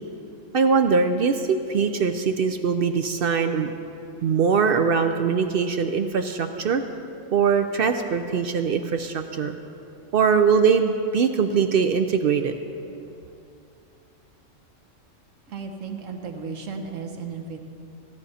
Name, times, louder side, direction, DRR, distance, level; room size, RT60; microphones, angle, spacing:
voice 1, 0.5-3.7 4.2-6.8 7.3-9.6 10.1-12.6, right 6 dB, 60° right, 7 dB, 0.6 m, -22 dB
voice 2, 15.5-17.7, right 5 dB, 75° right, 4 dB, 1.4 m, -34 dB
16.0 x 10.0 x 4.2 m, 2.6 s
omnidirectional pair, 1.3 m